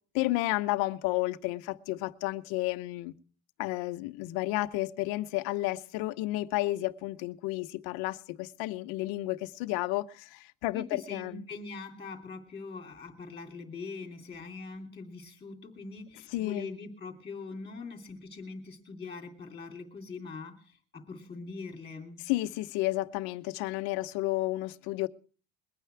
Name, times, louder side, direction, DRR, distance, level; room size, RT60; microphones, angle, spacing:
voice 1, 0.1-3.1 3.6-11.4 16.3-16.7 22.2-25.1, left 18 dB, 60° left, 0.9 m, -32 dB
voice 2, 10.7-22.2, left 4 dB, 10° left, 2.8 m, -42 dB
21.5 x 9.3 x 4.6 m
cardioid pair, 170°, 43 cm